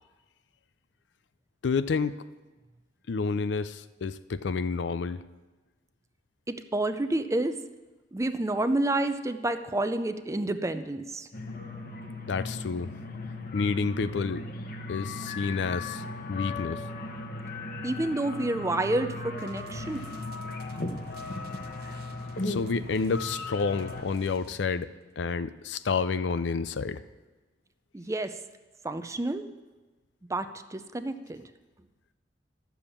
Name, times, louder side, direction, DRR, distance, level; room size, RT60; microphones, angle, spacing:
voice 1, 1.6-2.2 3.1-5.2 12.3-12.9 13.5-14.4 14.9-16.0 16.3-16.8 22.4-27.0, left 4 dB, 75° left, 13 dB, 0.5 m, -29 dB
voice 2, 6.5-7.6 8.1-11.3 17.8-20.1 27.9-28.4 28.8-29.5 30.3-31.5, right 2 dB, 15° right, 10 dB, 0.5 m, -29 dB
sound 1, 11.3-24.0, left 2 dB, 55° left, 1.1 m, -37 dB
sound 2, 19.4-24.9, right 4 dB, 60° right, 0.8 m, -52 dB
11.5 x 7.1 x 7.1 m, 1.2 s
head